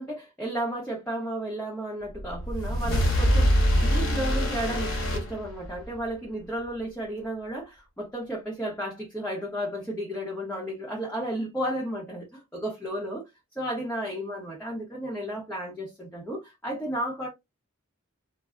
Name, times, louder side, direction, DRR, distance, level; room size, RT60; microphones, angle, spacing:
voice 1, 0.0-13.2 13.6-17.3, right 1 dB, 10° left, 0.7 m, -33 dB
sound 1, 2.2-6.0, equal, 60° left, 1.0 m, -24 dB
2.2 x 2.0 x 3.5 m
head